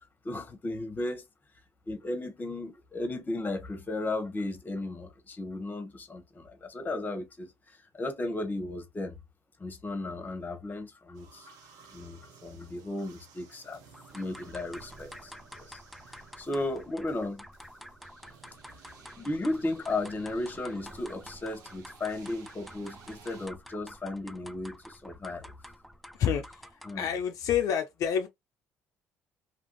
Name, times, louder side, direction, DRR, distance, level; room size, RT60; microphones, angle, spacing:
voice 1, 0.2-1.2 1.9-9.2 9.6-11.6 11.9-13.8 14.1-17.4 18.7-18.8 19.2-25.5 26.8-27.1, left 2 dB, 30° left, 1.0 m, -35 dB
sound 1, 11.1-23.5, right 6 dB, 75° right, 0.8 m, -56 dB
sound 2, 13.9-27.1, equal, ahead, 0.4 m, -49 dB
voice 2, 26.1-28.3, left 8 dB, 65° left, 0.4 m, -29 dB
2.8 x 2.5 x 2.8 m
supercardioid pair, 65°, 6 cm